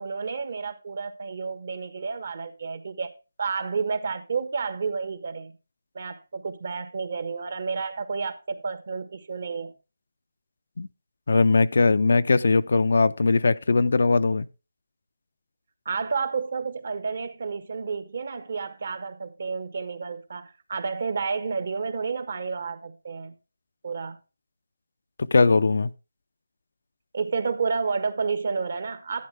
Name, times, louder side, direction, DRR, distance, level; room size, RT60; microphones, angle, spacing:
voice 1, 0.0-3.1 3.4-5.5 5.9-9.7 15.8-23.3 23.8-24.2 27.1-29.3, right 5 dB, 55° right, 1.4 m, -30 dB
voice 2, 11.3-14.5 25.2-25.9, left 3 dB, 65° left, 0.5 m, -20 dB
11.5 x 10.0 x 3.4 m
figure-of-eight pair, 160°, 0 cm